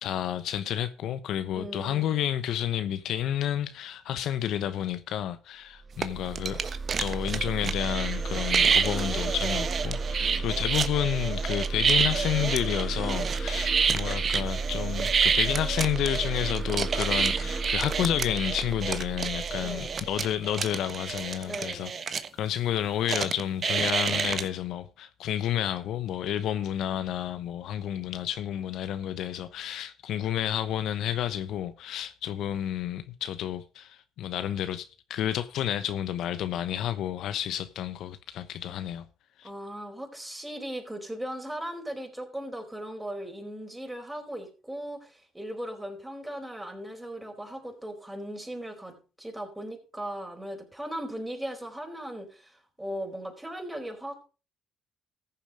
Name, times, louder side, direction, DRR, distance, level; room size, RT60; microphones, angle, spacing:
voice 1, 0.0-6.6 7.0-39.0 39.4-39.5, left 11 dB, 70° left, 0.9 m, -30 dB
voice 2, 1.5-2.1 10.2-10.6 19.6-20.0 21.5-21.9 39.4-54.3, right 1 dB, 10° right, 4.6 m, -38 dB
sound 1, 5.8-21.2, right 4 dB, 25° right, 1.8 m, -33 dB
sound 2, 6.0-6.1 6.4-22.3 23.1-24.4, right 6 dB, 45° right, 1.2 m, -28 dB
14.5 x 7.1 x 4.9 m
supercardioid pair, 65°, 0 cm